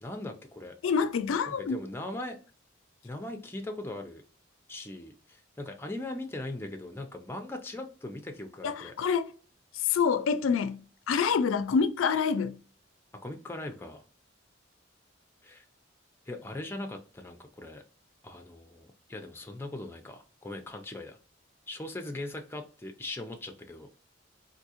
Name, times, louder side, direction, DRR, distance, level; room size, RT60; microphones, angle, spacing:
voice 1, 0.0-0.8 1.5-2.4 3.0-4.2 4.7-8.9 13.2-14.0 15.4-15.6 16.3-17.8 18.2-21.2 21.7-23.9, left 2 dB, 10° left, 0.4 m, -40 dB
voice 2, 0.8-1.8 8.6-9.3 9.7-12.6, left 6 dB, 85° left, 0.4 m, -27 dB
3.6 x 2.6 x 2.8 m
head